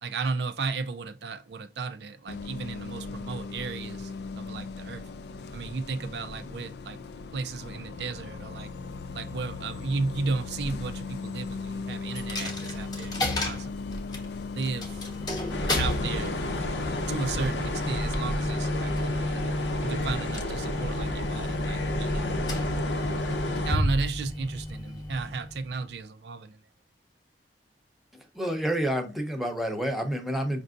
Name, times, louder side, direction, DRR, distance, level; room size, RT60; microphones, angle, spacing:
voice 1, 0.0-5.1 5.5-7.0 7.3-8.7 9.1-13.9 14.5-15.1 15.8-16.4 17.1-19.4 19.8-22.4 22.7-22.8 23.6-26.6, right 4 dB, 70° right, 0.4 m, -34 dB
Bus, 2.3-17.9, left 4 dB, 65° left, 0.3 m, -38 dB
Coin (dropping), 12.2-25.9, left 1 dB, 25° left, 0.9 m, -32 dB
sound 1, 15.5-23.8, left 1 dB, 85° left, 0.7 m, -31 dB
voice 2, 28.3-30.6, equal, ahead, 0.7 m, -29 dB
5.3 x 2.6 x 2.4 m
head